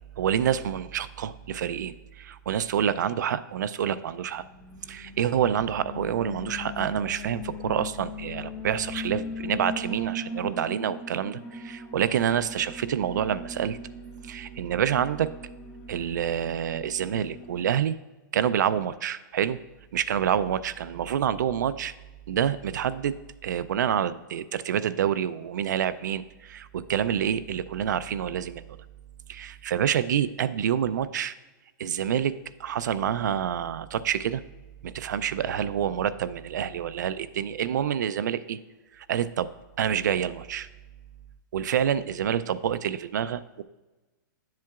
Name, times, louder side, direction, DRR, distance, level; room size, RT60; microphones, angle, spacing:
voice 1, 0.2-4.4 4.9-13.8 14.2-15.3 15.9-18.0 18.3-19.6 19.9-21.9 22.3-23.2 23.4-28.6 29.3-31.3 31.8-32.3 32.6-34.4 34.8-38.6 39.0-39.5 39.8-40.7 41.5-43.6, right 9 dB, 60° right, 14 dB, 0.4 m, -27 dB
Alarm, 4.3-17.7, left 2 dB, 20° left, 0.9 m, -40 dB
9.7 x 7.5 x 2.4 m, 1.1 s
hypercardioid pair, 180°, 11 cm